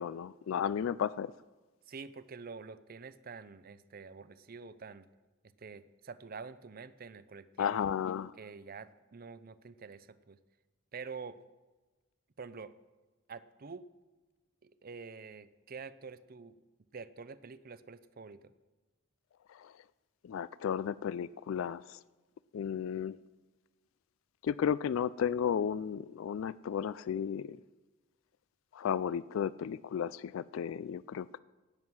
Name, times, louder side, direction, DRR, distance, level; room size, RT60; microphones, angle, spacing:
voice 1, 0.0-1.3 7.6-8.3 19.6-19.7 20.2-22.0 22.5-23.2 24.4-27.6 28.7-31.4, left 8 dB, 65° left, 19 dB, 0.3 m, -34 dB
voice 2, 1.9-5.1 5.6-7.9 8.4-10.4 10.9-11.4 12.4-12.7 13.3-13.9 14.6-16.6 16.9-18.5, right 5 dB, 45° right, 14 dB, 0.5 m, -47 dB
17.0 x 7.4 x 6.2 m, 1.2 s
head